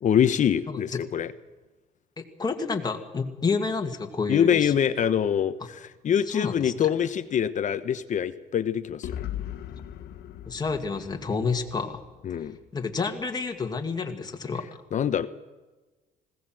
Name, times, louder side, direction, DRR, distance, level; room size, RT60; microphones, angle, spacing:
voice 1, 0.0-1.3 4.3-9.1 12.2-12.6 14.9-15.3, left 8 dB, 45° left, 12 dB, 1.1 m, -24 dB
voice 2, 2.2-4.7 6.3-6.9 10.5-12.0 12.7-14.7, left 4 dB, 25° left, 3 dB, 2.3 m, -29 dB
sound 1, 9.0-12.9, left 11 dB, 70° left, 1.5 m, -39 dB
20.0 x 17.0 x 7.7 m, 1.2 s
cardioid pair, 110°, 17 cm